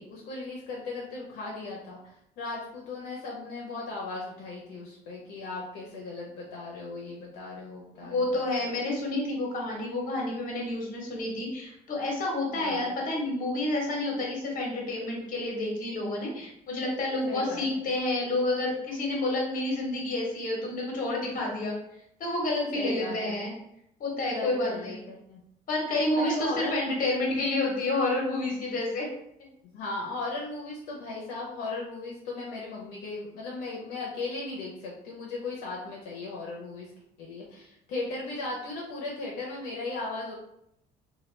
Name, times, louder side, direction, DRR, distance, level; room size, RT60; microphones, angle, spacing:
voice 1, 0.0-8.4 12.5-12.9 17.3-17.8 22.7-23.4 24.3-25.4 26.2-27.0 29.7-36.9 37.2-40.3, left 3 dB, 85° left, -3 dB, 0.7 m, -37 dB
voice 2, 8.0-21.8 22.2-23.5 24.0-25.0 25.7-29.1, left 2 dB, 55° left, -1 dB, 1.1 m, -29 dB
2.9 x 2.3 x 3.1 m, 0.77 s
cardioid pair, 110°, 17 cm